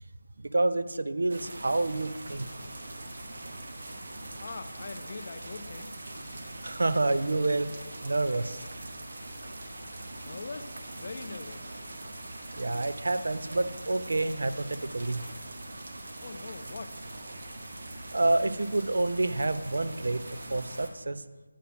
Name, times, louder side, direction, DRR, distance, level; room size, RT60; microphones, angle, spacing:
voice 1, 0.4-2.5 6.6-7.7 8.0-8.7 12.6-15.2 18.1-21.2, right 2 dB, 70° right, 12 dB, 0.4 m, -28 dB
sound 1, 1.3-20.9, right 2 dB, 50° right, 0.8 m, -42 dB
voice 2, 4.4-6.0 10.2-11.8 16.2-17.2, left 4 dB, 35° left, 11 dB, 0.4 m, -42 dB
8.2 x 3.8 x 5.8 m, 1.2 s
figure-of-eight pair, 175°, 0 cm